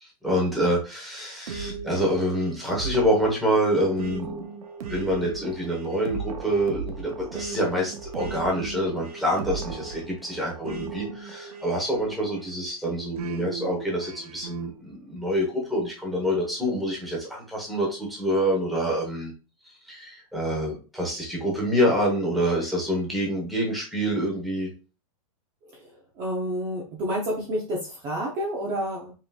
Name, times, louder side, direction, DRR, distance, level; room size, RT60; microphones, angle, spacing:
voice 1, 0.0-4.5 4.9-19.3 19.9-24.7, equal, ahead, -3 dB, 1.0 m, -26 dB
sound 1, 1.5-12.5 13.2-14.7, right 5 dB, 80° right, 0.9 m, -37 dB
voice 2, 25.6-29.1, equal, 20° right, -2 dB, 0.7 m, -30 dB
5.7 x 3.0 x 2.3 m, 0.33 s
supercardioid pair, 175°, 19 cm